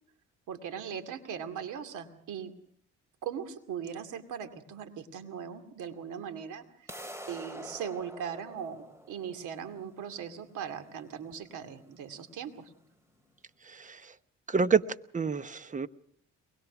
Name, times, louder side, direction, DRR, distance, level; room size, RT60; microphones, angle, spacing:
voice 1, 0.5-2.5 3.2-6.9 7.3-12.7, right 8 dB, 85° right, 7 dB, 2.4 m, -39 dB
sound 1, 6.9-12.9, equal, 10° right, 2.6 m, -47 dB
voice 2, 13.7-14.0 14.5-14.8 15.1-15.9, right 6 dB, 25° right, 13 dB, 1.0 m, -27 dB
23.0 x 21.0 x 6.0 m, 0.62 s
cardioid pair, 90°, 30 cm